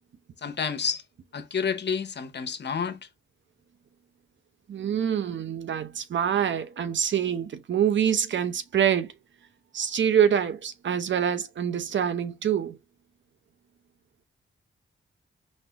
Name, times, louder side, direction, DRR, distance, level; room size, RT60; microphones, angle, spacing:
voice 1, 0.4-1.0 1.3-3.0, left 6 dB, 60° left, 0.9 m, -29 dB
voice 2, 4.7-9.1 9.7-12.8, right 8 dB, 70° right, 0.7 m, -25 dB
4.2 x 2.5 x 3.4 m
cardioid pair, 70°, 20 cm